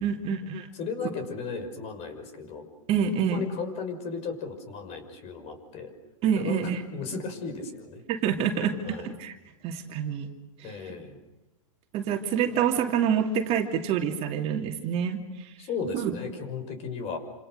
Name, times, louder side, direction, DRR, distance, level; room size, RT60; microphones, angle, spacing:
voice 1, 0.0-0.7 2.9-3.4 6.2-6.8 8.1-9.3 9.6-10.3 10.6-10.8 11.9-15.5 15.9-16.1, right 7 dB, 35° right, 4 dB, 2.6 m, -27 dB
voice 2, 0.7-2.7 3.2-5.9 6.4-8.0 8.8-9.1 10.6-11.2 15.6-17.2, left 5 dB, 35° left, 8 dB, 5.9 m, -35 dB
28.5 x 27.0 x 6.6 m, 1.0 s
hypercardioid pair, 120°, 17 cm